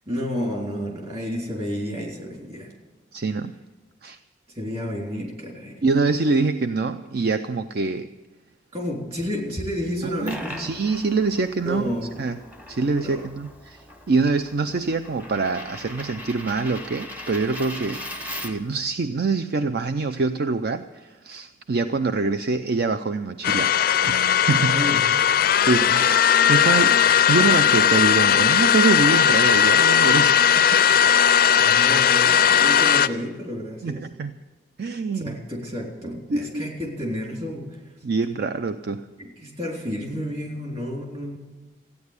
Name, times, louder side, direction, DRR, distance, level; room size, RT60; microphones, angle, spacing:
voice 1, 0.1-2.7 4.5-5.7 8.7-10.7 11.7-12.3 13.0-13.2 24.7-25.1 31.6-34.0 35.1-37.8 39.2-41.4, equal, 35° right, -1 dB, 3.8 m, -31 dB
voice 2, 3.1-3.6 4.0-4.2 5.8-8.1 10.0-11.9 12.2-12.4 12.7-18.1 18.4-24.9 25.6-27.0 27.3-30.8 33.8-34.3 34.8-35.4 36.3-36.7 38.0-39.1, right 4 dB, 55° right, 10 dB, 0.5 m, -25 dB
Coin (dropping), 9.9-18.8, left 1 dB, 10° right, 0.9 m, -39 dB
sound 1, 23.4-33.1, left 8 dB, 55° left, 0.4 m, -18 dB
14.5 x 9.6 x 8.2 m, 1.2 s
head